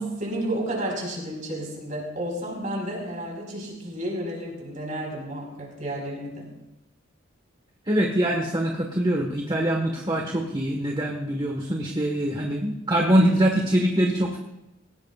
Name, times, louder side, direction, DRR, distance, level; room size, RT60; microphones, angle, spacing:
voice 1, 0.0-6.6, right 1 dB, 40° right, 0 dB, 4.9 m, -31 dB
voice 2, 7.9-14.4, right 1 dB, 25° right, 1 dB, 1.5 m, -23 dB
21.5 x 18.0 x 2.5 m, 0.94 s
head